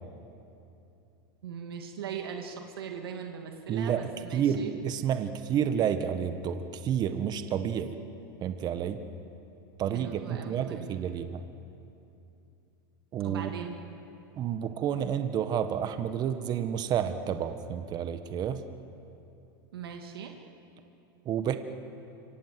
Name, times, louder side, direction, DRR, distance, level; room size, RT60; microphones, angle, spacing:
voice 1, 1.4-4.7 9.9-11.1 13.2-13.7 19.7-20.4, right 7 dB, 90° right, 3 dB, 2.5 m, -40 dB
voice 2, 3.7-4.0 4.3-8.0 8.4-9.0 9.8-11.4 13.1-13.5 14.4-18.6 21.2-21.6, right 9 dB, 35° right, 9 dB, 1.5 m, -30 dB
26.5 x 25.0 x 7.8 m, 2.8 s
supercardioid pair, 120°, 12 cm